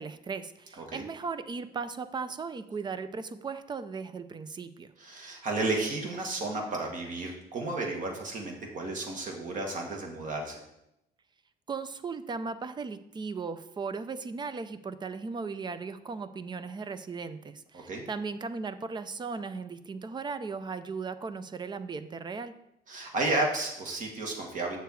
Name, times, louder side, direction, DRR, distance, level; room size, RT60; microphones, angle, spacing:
voice 1, 0.0-4.9 11.7-22.5, right 4 dB, 25° right, 12 dB, 0.6 m, -37 dB
voice 2, 5.0-10.6 17.7-18.0 22.9-24.8, right 2 dB, 50° right, 1 dB, 2.1 m, -32 dB
8.1 x 6.6 x 4.7 m, 0.84 s
cardioid pair, 110°, 17 cm